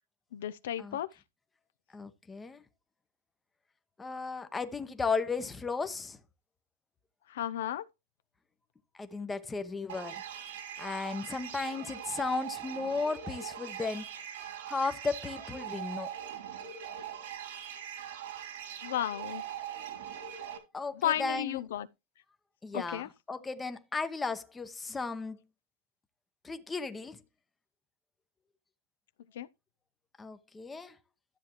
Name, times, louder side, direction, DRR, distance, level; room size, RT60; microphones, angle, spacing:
voice 1, 0.3-1.1 7.3-7.8 18.8-19.4 21.0-21.9 22.7-23.1 29.4-29.5, left 11 dB, 75° left, 0.6 m, -33 dB
voice 2, 1.9-2.6 4.0-6.2 8.9-10.2 10.8-14.1 14.7-16.1 20.7-21.6 22.6-25.4 26.4-27.2 30.2-31.0, left 4 dB, 10° left, 0.8 m, -35 dB
sound 1, 9.9-20.6, right 9 dB, 70° right, 2.7 m, -41 dB
13.0 x 7.3 x 3.0 m
supercardioid pair, 150°, 0 cm